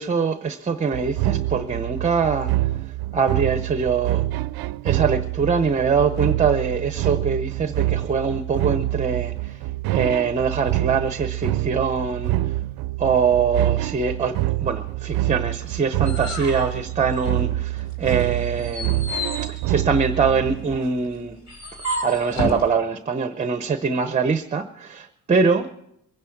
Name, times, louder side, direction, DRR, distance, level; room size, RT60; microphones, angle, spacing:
voice 1, 0.0-2.5 3.1-4.2 4.8-9.6 9.9-12.4 13.0-19.0 19.4-21.4 22.0-25.7, right 5 dB, 20° right, 0.7 m, -23 dB
sound 1, 0.9-20.8, right 16 dB, 90° right, 0.5 m, -26 dB
sound 2, 15.6-17.6 18.0-22.7, equal, 55° left, 4.2 m, -31 dB
22.5 x 10.0 x 5.9 m
cardioid pair, 150°, 36 cm